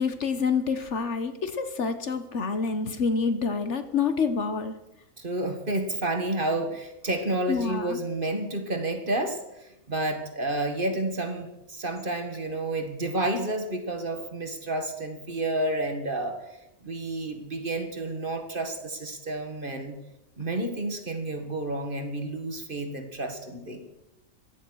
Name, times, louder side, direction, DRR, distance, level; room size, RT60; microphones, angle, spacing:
voice 1, 0.0-4.7 7.5-8.0, left 5 dB, 55° left, 9 dB, 1.3 m, -27 dB
voice 2, 5.2-16.4 16.8-20.0 20.4-23.8, right 1 dB, 35° right, 6 dB, 2.0 m, -30 dB
15.5 x 11.5 x 6.3 m, 0.90 s
omnidirectional pair, 1.5 m